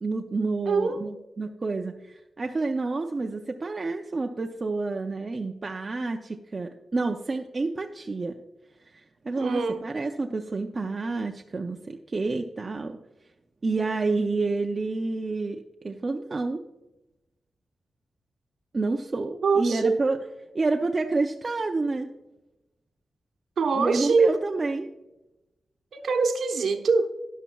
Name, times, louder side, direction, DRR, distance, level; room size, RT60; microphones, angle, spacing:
voice 1, 0.0-8.4 8.9-13.0 13.6-16.6 18.7-20.2 20.5-22.1 23.8-24.9, right 3 dB, 30° right, 3 dB, 0.5 m, -29 dB
voice 2, 0.7-1.2 9.4-9.8 19.4-20.0 23.6-24.4 25.9-27.1, right 4 dB, 70° right, 6 dB, 1.0 m, -24 dB
13.0 x 10.0 x 2.3 m, 0.96 s
wide cardioid pair, 180°, 0 cm